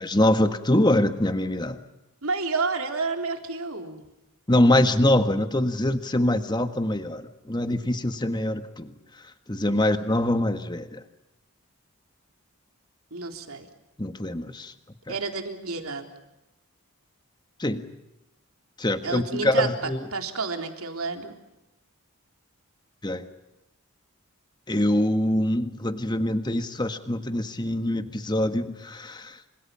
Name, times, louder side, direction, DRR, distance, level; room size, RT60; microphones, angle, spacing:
voice 1, 0.0-1.8 4.5-8.9 9.5-11.0 14.0-14.7 17.6-17.9 18.8-20.0 23.0-23.2 24.7-29.4, left 1 dB, 20° left, 9 dB, 1.5 m, -24 dB
voice 2, 2.2-4.1 13.1-13.7 15.1-16.1 19.0-19.7 20.1-21.3, right 4 dB, 80° right, 4 dB, 3.7 m, -30 dB
29.5 x 26.0 x 5.8 m, 0.97 s
head